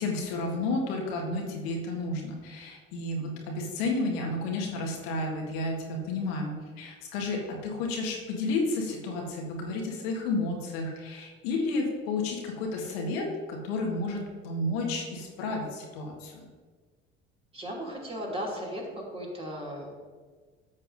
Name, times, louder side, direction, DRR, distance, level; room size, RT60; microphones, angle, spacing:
voice 1, 0.0-16.4, left 2 dB, 65° left, 0 dB, 1.5 m, -31 dB
voice 2, 17.5-20.0, equal, 20° right, -3 dB, 2.7 m, -36 dB
13.0 x 7.3 x 2.6 m, 1.5 s
figure-of-eight pair, 60°, 32 cm